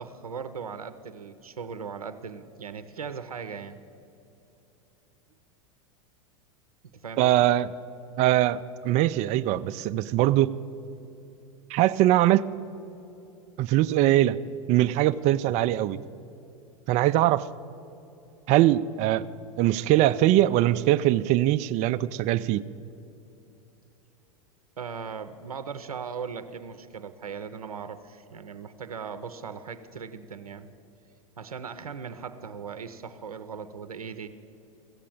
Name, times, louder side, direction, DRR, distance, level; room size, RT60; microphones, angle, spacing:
voice 1, 0.0-3.8 6.9-7.5 24.8-30.7 31.4-34.3, right 6 dB, 90° right, 10 dB, 0.6 m, -38 dB
voice 2, 7.2-7.7 8.2-10.6 11.7-12.5 13.6-14.4 14.7-16.0 16.9-17.5 18.5-19.2 19.6-22.6, right 14 dB, 40° right, 13 dB, 0.4 m, -22 dB
15.0 x 7.5 x 8.6 m, 2.8 s
hypercardioid pair, 95°, 18 cm